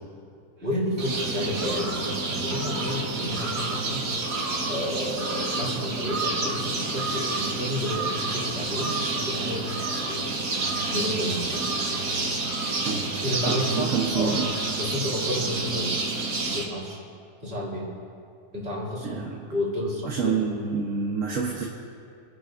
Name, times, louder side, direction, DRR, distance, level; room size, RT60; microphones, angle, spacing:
voice 1, 0.6-4.0 4.7-10.2 10.9-11.7 13.2-14.4 14.8-16.0 16.5-17.0 17.4-17.9 18.5-19.2 19.5-20.4, equal, 35° right, -7 dB, 3.5 m, -31 dB
sound 1, 1.0-16.6, right 3 dB, 75° right, 2.1 m, -29 dB
voice 2, 13.5-14.6 19.0-19.4 20.0-21.7, right 5 dB, 55° right, -2 dB, 1.5 m, -28 dB
29.5 x 11.5 x 2.7 m, 2.4 s
omnidirectional pair, 1.7 m